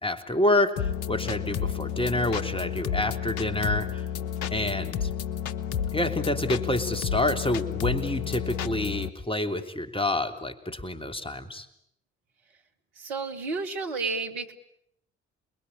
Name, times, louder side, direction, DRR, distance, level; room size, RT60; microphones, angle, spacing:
voice 1, 0.0-4.0 4.5-5.1 5.9-11.7, left 1 dB, 15° left, 8 dB, 3.3 m, -28 dB
sound 1, 0.8-9.1, left 9 dB, 75° left, 1.1 m, -31 dB
voice 2, 13.0-14.5, right 4 dB, 75° right, 4 dB, 2.4 m, -31 dB
28.5 x 21.5 x 8.8 m, 0.74 s
figure-of-eight pair, 40°, 33 cm